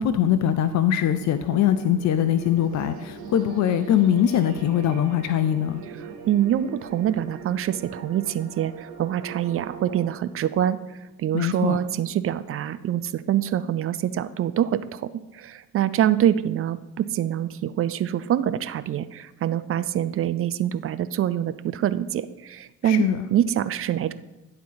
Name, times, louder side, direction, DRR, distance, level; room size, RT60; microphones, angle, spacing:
voice 1, 0.0-5.8 11.3-11.8 22.8-23.3, left 10 dB, 40° left, 12 dB, 0.5 m, -22 dB
sound 1, 0.6-10.1, right 6 dB, 70° right, 1.9 m, -41 dB
voice 2, 6.0-24.1, right 10 dB, 35° right, 13 dB, 0.4 m, -25 dB
10.0 x 3.8 x 5.6 m, 1.0 s
figure-of-eight pair, 50°, 43 cm